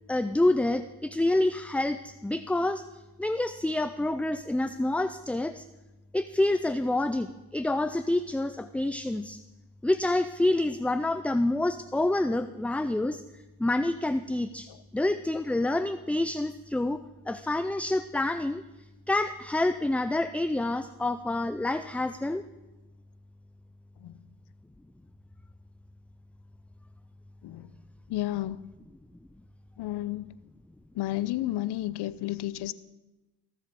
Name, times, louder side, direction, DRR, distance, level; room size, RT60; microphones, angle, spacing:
voice 1, 0.1-2.8 3.2-5.6 6.1-9.4 9.8-13.2 13.6-14.7 14.9-17.0 17.3-18.6 19.1-22.4, left 2 dB, 5° left, 11 dB, 0.3 m, -27 dB
voice 2, 28.1-28.6 29.8-30.4 30.9-32.7, left 15 dB, 70° left, 16 dB, 0.8 m, -32 dB
17.0 x 7.4 x 6.8 m, 1.1 s
supercardioid pair, 70°, 41 cm